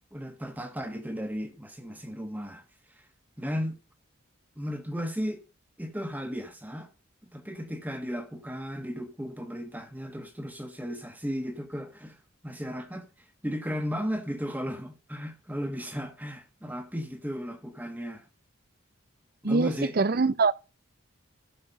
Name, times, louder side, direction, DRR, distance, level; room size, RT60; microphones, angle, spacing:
voice 1, 0.1-2.6 3.4-3.8 4.6-5.4 5.8-6.9 7.2-12.2 12.4-13.1 13.4-18.3 19.4-20.0, equal, 10° right, 1.4 m, -35 dB
voice 2, 20.0-20.5, right 4 dB, 45° right, 0.5 m, -23 dB
12.0 x 4.7 x 5.8 m
head